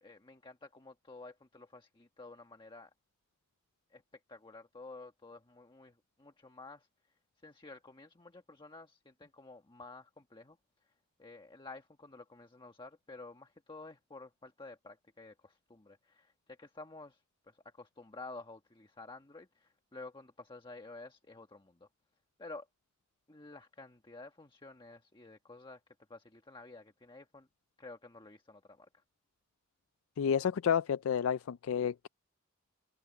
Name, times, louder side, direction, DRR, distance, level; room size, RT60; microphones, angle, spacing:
voice 1, 0.0-2.9 3.9-6.9 7.4-10.6 10.8-10.9 11.2-21.9 22.4-22.7 23.3-25.8 26.1-27.5 27.8-29.0, left 3 dB, 25° left, 1.2 m, -51 dB
voice 2, 30.2-32.1, left 7 dB, 80° left, 0.4 m, -30 dB
open air
head